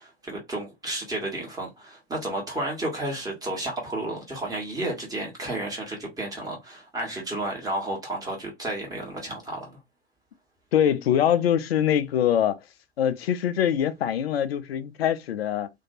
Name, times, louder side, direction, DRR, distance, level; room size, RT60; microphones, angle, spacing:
voice 1, 0.0-9.8, right 1 dB, 10° right, 1.2 m, -32 dB
voice 2, 10.7-12.6 13.0-15.7, left 9 dB, 75° left, 0.5 m, -23 dB
2.6 x 2.2 x 2.6 m
figure-of-eight pair, 85°, 31 cm